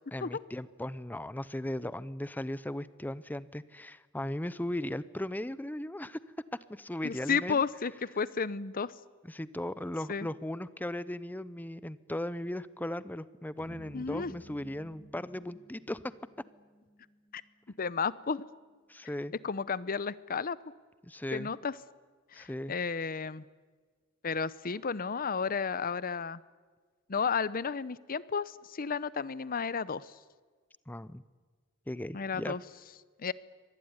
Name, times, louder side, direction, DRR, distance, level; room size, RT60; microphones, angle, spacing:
voice 1, 0.1-6.2 6.7-7.6 9.2-16.0 18.9-19.3 21.0-21.5 22.3-22.7 30.9-31.2 31.9-32.6, left 1 dB, 10° left, 16 dB, 0.7 m, -37 dB
voice 2, 7.0-8.9 10.1-10.3 13.9-14.3 17.3-17.4 17.8-18.5 19.4-20.6 21.3-21.8 22.3-23.5 24.2-26.4 27.1-30.2 32.1-32.6 33.2-33.3, left 5 dB, 45° left, 18 dB, 0.7 m, -32 dB
sound 1, 13.6-18.0, right 1 dB, 75° left, 4.7 m, -53 dB
24.5 x 19.5 x 9.7 m, 1.4 s
head